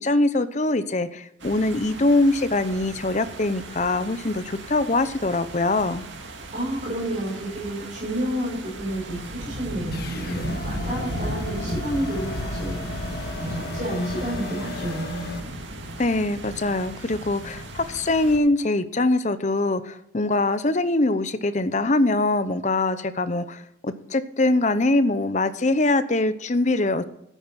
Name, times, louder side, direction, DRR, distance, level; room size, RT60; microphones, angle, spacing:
voice 1, 0.0-6.1 16.0-27.1, left 2 dB, 40° left, 12 dB, 0.8 m, -23 dB
sound 1, 1.4-18.4, right 1 dB, 85° right, 2.1 m, -35 dB
voice 2, 6.5-13.0 13.3-15.3, right 1 dB, 40° right, -5 dB, 6.4 m, -30 dB
sound 2, 9.9-15.4, left 3 dB, 55° left, 1.7 m, -36 dB
13.5 x 9.1 x 5.9 m, 0.82 s
head